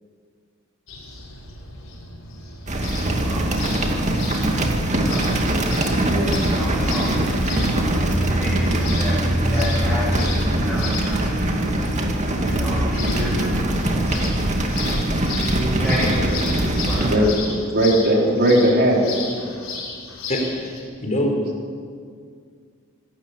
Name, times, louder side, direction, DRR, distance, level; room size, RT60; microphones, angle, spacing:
sound 1, 0.9-20.8, left 4 dB, 65° left, 5.1 m, -35 dB
sound 2, 2.7-17.2, right 1 dB, 35° right, 2.4 m, -22 dB
voice 1, 3.2-5.9 6.5-16.4 16.8-17.3, equal, ahead, -10 dB, 7.8 m, -32 dB
voice 2, 6.1-6.4 13.3-13.4 17.0-17.3 17.7-19.4, right 1 dB, 50° right, -1 dB, 4.5 m, -18 dB
voice 3, 20.3-21.4, equal, 35° left, 2 dB, 4.1 m, -24 dB
26.0 x 13.0 x 8.3 m, 2.1 s
head